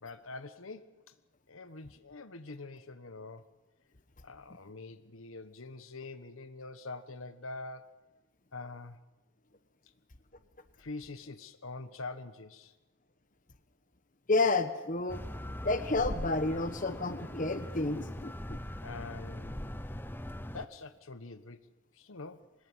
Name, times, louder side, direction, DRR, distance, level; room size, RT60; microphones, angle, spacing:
voice 1, 0.0-1.0 1.5-3.5 4.2-8.0 8.5-9.0 10.8-12.7 18.8-19.7 20.5-21.7 21.9-22.5, left 3 dB, 75° left, 11 dB, 1.2 m, -45 dB
voice 2, 14.3-15.2 15.6-18.6, left 3 dB, 40° left, 10 dB, 1.2 m, -30 dB
sound 1, 15.1-20.7, left 1 dB, 10° left, 0.8 m, -41 dB
25.5 x 20.5 x 7.4 m, 1.1 s
head